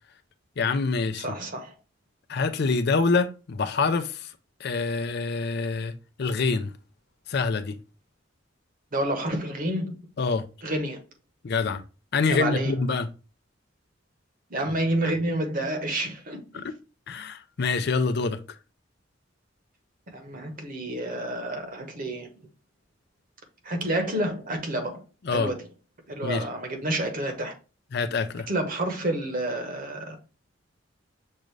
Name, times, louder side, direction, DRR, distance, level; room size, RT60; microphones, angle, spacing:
voice 1, 0.6-1.2 2.3-4.3 4.6-5.9 6.2-6.7 7.3-7.8 10.2-10.4 11.4-11.8 12.1-13.1 16.6-16.7 17.1-18.4 25.3-25.5 26.2-26.4 27.9-28.5, left 4 dB, 60° left, 0.5 m, -25 dB
voice 2, 1.2-1.7 8.9-10.0 10.6-11.0 12.3-12.7 14.5-16.4 20.1-22.3 23.6-25.0 25.3-25.6 26.1-27.5 28.5-30.2, right 1 dB, 45° right, 1.0 m, -29 dB
6.5 x 2.5 x 3.2 m
head